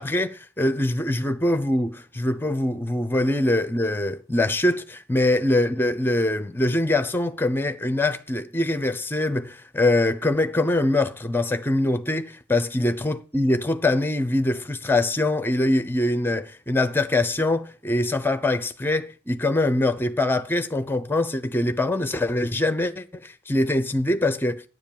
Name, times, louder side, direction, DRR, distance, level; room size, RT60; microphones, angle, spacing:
voice 1, 0.0-24.6, left 2 dB, 10° left, 0.7 m, -23 dB
9.8 x 7.2 x 7.3 m
head